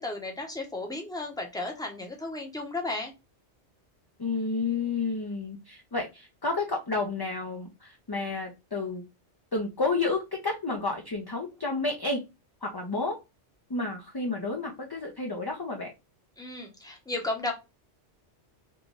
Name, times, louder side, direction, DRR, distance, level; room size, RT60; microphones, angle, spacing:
voice 1, 0.0-3.1 16.4-17.5, left 2 dB, 5° left, 2 dB, 0.7 m, -34 dB
voice 2, 4.2-9.0 9.5-12.2 12.6-13.2 13.7-15.9, left 3 dB, 30° left, 1 dB, 0.4 m, -31 dB
3.8 x 2.9 x 2.3 m, 0.25 s
omnidirectional pair, 1.2 m